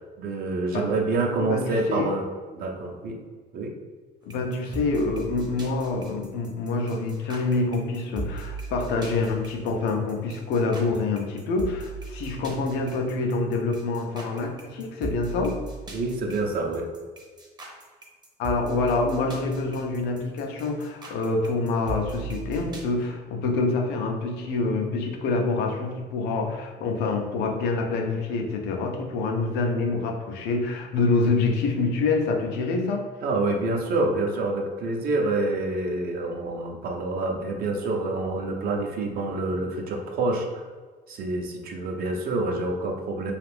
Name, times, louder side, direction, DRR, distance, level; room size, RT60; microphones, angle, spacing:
voice 1, 0.2-2.3 2.5-3.2 3.5-3.7 15.9-16.9 33.2-40.7 41.1-43.3, right 2 dB, 65° right, 2 dB, 0.6 m, -27 dB
voice 2, 1.4-2.1 4.2-15.6 18.4-33.1, left 3 dB, 90° left, 3 dB, 0.5 m, -26 dB
sound 1, 4.3-22.8, right 3 dB, 25° right, 0.6 m, -38 dB
2.5 x 2.4 x 3.3 m, 1.5 s
cardioid pair, 110°, 17 cm